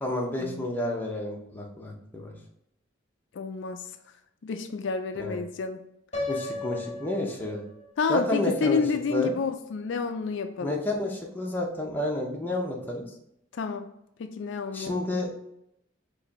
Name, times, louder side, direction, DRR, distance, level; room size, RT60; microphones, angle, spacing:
voice 1, 0.0-2.3 5.2-5.4 6.3-7.6 8.1-8.8 9.1-9.3 10.6-13.1 14.7-15.3, left 1 dB, 10° left, -1 dB, 0.7 m, -30 dB
voice 2, 3.3-3.9 4.4-5.8 8.0-10.8 13.5-13.9 14.2-15.0, left 5 dB, 70° left, 7 dB, 0.4 m, -29 dB
Piano, 6.1-8.1, left 2 dB, 35° left, 0.9 m, -35 dB
4.9 x 2.6 x 4.1 m, 0.79 s
head